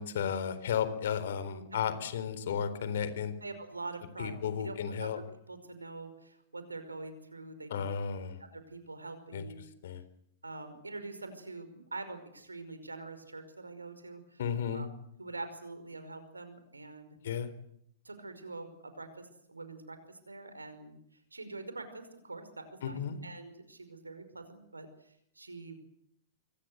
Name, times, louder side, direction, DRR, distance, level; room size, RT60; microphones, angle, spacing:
voice 1, 0.0-3.3 4.2-5.2 7.7-8.4 9.3-9.4 9.8-10.0 14.4-14.9 17.2-17.5 22.8-23.2, left 7 dB, 60° left, 13 dB, 3.9 m, -33 dB
voice 2, 3.4-5.2 5.5-7.9 8.5-9.6 10.4-14.4 14.7-14.9 15.2-17.2 18.1-25.8, right 3 dB, 85° right, 10 dB, 5.3 m, -45 dB
26.5 x 23.0 x 8.0 m, 0.72 s
figure-of-eight pair, 105°, 0 cm